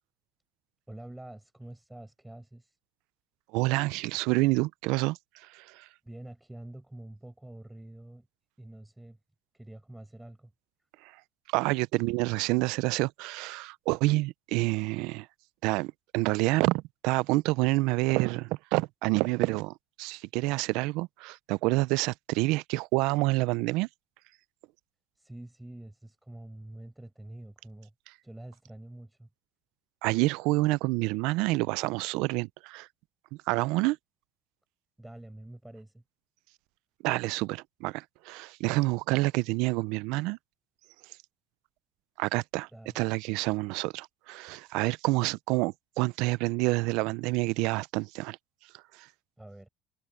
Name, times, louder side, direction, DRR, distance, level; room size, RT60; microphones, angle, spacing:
voice 1, 0.9-2.8 6.0-8.3 8.6-9.2 9.5-10.5 25.2-27.9 28.2-29.3 35.0-36.0 42.7-43.0 49.4-49.7, right 1 dB, 5° right, 6.3 m, -46 dB
voice 2, 3.5-5.9 11.0-11.1 11.5-15.3 15.6-23.9 30.0-32.9 33.5-34.0 37.0-40.4 42.2-42.7 42.9-48.4 48.7-49.1, right 22 dB, 80° right, 0.4 m, -28 dB
cardioid pair, 125°, 0 cm